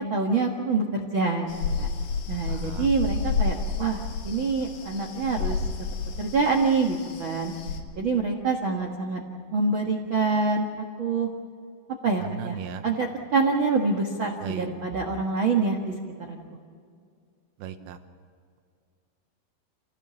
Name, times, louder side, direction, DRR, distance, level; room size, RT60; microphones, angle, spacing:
voice 1, 0.0-1.5 1.8-1.9 2.3-5.6 6.2-7.5 7.9-9.2 9.5-11.3 12.0-12.6 12.8-15.9 16.3-16.4, right 4 dB, 70° right, 2 dB, 1.1 m, -26 dB
sound 1, 1.5-7.8, left 5 dB, 80° left, 4.2 m, -31 dB
voice 2, 2.5-2.9 12.2-12.8 14.4-14.7 17.6-18.0, right 9 dB, 90° right, 8 dB, 3.4 m, -36 dB
28.0 x 17.0 x 7.0 m, 2.2 s
omnidirectional pair, 4.9 m